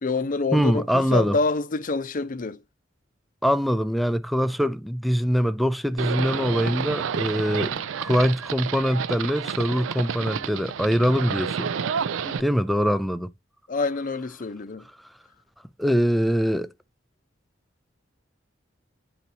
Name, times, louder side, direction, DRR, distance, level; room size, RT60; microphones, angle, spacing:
voice 1, 0.0-2.6 7.6-7.9 10.3-10.5 12.2-12.5 13.7-14.9, left 3 dB, 45° left, 0.6 m, -27 dB
voice 2, 0.5-1.4 3.4-7.7 8.0-11.7 12.4-13.3 15.8-16.7, equal, ahead, 0.3 m, -23 dB
Livestock farm animals working animals, 6.0-12.4, right 7 dB, 85° right, 0.4 m, -30 dB
9.5 x 4.1 x 2.8 m
head